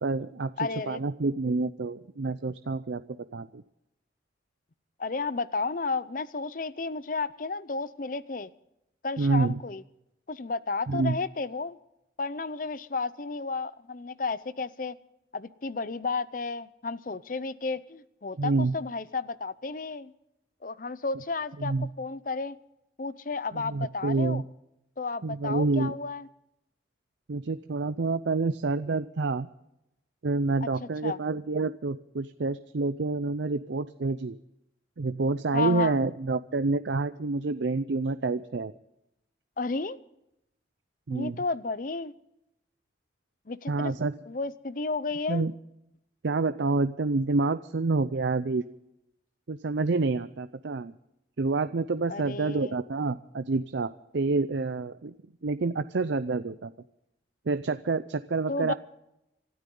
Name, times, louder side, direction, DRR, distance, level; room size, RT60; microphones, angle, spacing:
voice 1, 0.0-3.0 3.3-3.6 9.2-9.6 10.9-11.2 18.4-18.7 21.6-21.9 23.5-24.4 25.2-25.9 27.3-29.5 30.2-34.4 35.0-38.7 41.1-41.4 43.7-44.1 45.3-45.5 46.2-48.6 49.5-50.9 51.4-55.1 55.4-56.7 57.5-58.7, right 3 dB, 70° right, 12 dB, 0.5 m, -28 dB
voice 2, 0.6-1.0 5.0-8.5 9.0-9.8 10.3-11.8 12.2-15.0 15.3-20.1 20.6-22.6 23.0-24.4 25.0-26.3 30.6-31.2 35.5-36.0 39.6-40.0 41.1-42.1 43.5-43.9 44.3-45.5 52.1-52.7 58.5-58.7, left 3 dB, 45° left, 17 dB, 0.6 m, -32 dB
27.5 x 13.0 x 3.8 m, 0.85 s
head